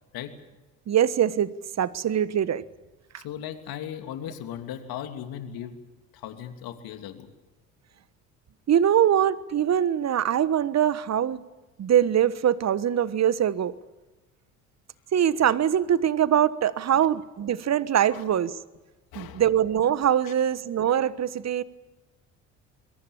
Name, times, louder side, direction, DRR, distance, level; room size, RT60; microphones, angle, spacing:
voice 1, 0.9-2.6 8.7-11.4 11.8-13.7 15.1-18.5 19.1-21.6, right 10 dB, 40° right, 1.3 m, -23 dB
voice 2, 3.2-5.8 6.1-7.3 16.9-17.2 18.1-18.2 19.1-19.4 20.2-20.3, left 10 dB, 60° left, 3.0 m, -37 dB
28.0 x 22.5 x 7.3 m
hypercardioid pair, 60°, 40 cm